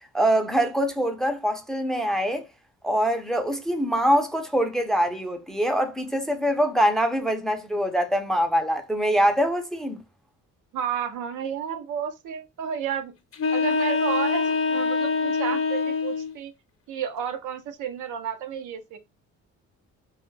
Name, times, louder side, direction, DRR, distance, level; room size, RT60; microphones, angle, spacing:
voice 1, 0.1-2.5 2.8-10.0, equal, ahead, 0.5 m, -24 dB
voice 2, 10.7-13.1 13.5-16.5 16.9-19.0, right 8 dB, 85° right, 0.6 m, -31 dB
sound 1, 13.3-16.3, left 4 dB, 50° left, 0.7 m, -24 dB
2.3 x 2.1 x 3.1 m
cardioid pair, 90°, 30 cm